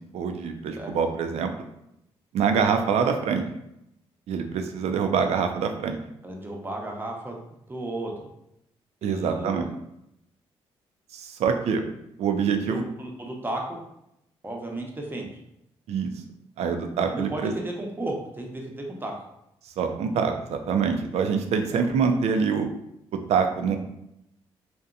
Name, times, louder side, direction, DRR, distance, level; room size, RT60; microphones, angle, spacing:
voice 1, 0.1-1.5 2.3-3.4 4.3-6.0 9.0-9.7 11.1-11.8 12.2-12.8 15.9-16.1 16.6-17.5 19.8-22.7 23.3-23.8, right 6 dB, 75° right, 6 dB, 0.4 m, -25 dB
voice 2, 6.2-7.4 7.7-8.3 9.0-9.7 12.7-13.8 14.4-15.3 17.1-19.3 21.6-21.9, right 1 dB, 20° right, 0 dB, 0.7 m, -34 dB
2.7 x 2.1 x 2.4 m, 0.80 s
supercardioid pair, 60°, 11 cm